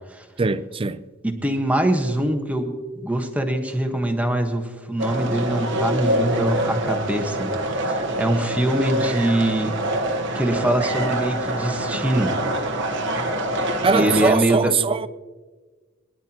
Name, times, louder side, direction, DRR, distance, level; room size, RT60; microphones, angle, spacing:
voice 1, 0.4-1.0 13.8-15.1, right 4 dB, 25° right, 0.4 m, -21 dB
voice 2, 1.2-2.7 3.0-7.5 7.8-9.7 10.3-12.3 13.9-14.7, right 1 dB, 10° right, 1.3 m, -23 dB
sound 1, 5.0-14.3, right 1 dB, 65° right, 1.2 m, -25 dB
22.0 x 10.5 x 3.0 m
head